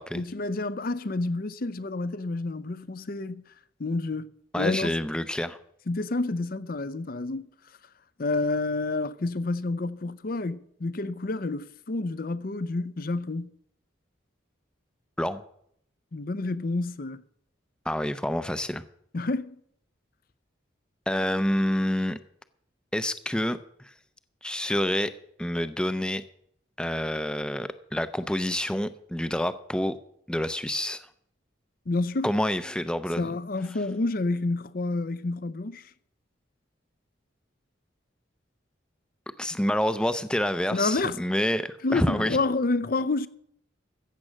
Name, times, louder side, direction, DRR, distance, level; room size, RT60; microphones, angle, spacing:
voice 1, 0.1-3.4 3.8-4.3 4.6-4.9 5.9-7.5 8.2-13.5 16.1-17.2 19.1-19.6 31.9-32.3 33.2-35.9 40.7-41.2 41.8-43.3, left 3 dB, 50° left, 0.6 m, -29 dB
voice 2, 4.5-5.6 15.2-15.4 17.9-18.8 21.1-22.2 22.9-23.9 24.4-25.1 25.4-26.2 26.8-30.0 30.3-31.1 32.2-33.3 39.4-42.4, left 1 dB, 5° left, 0.5 m, -28 dB
15.0 x 7.5 x 6.3 m
head